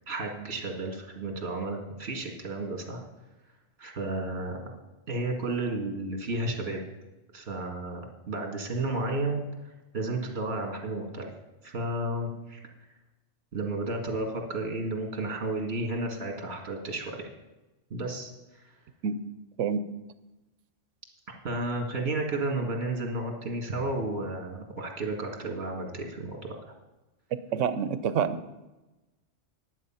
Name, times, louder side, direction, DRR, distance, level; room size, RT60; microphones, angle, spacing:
voice 1, 0.1-3.0 3.8-4.6 5.1-6.8 7.3-11.3 11.6-12.6 13.5-17.3 17.9-18.6 21.4-26.5, right 2 dB, 60° right, 2 dB, 2.1 m, -32 dB
voice 2, 27.5-28.4, right 7 dB, 85° right, 13 dB, 1.0 m, -27 dB
11.0 x 8.0 x 5.7 m, 1.1 s
omnidirectional pair, 1.2 m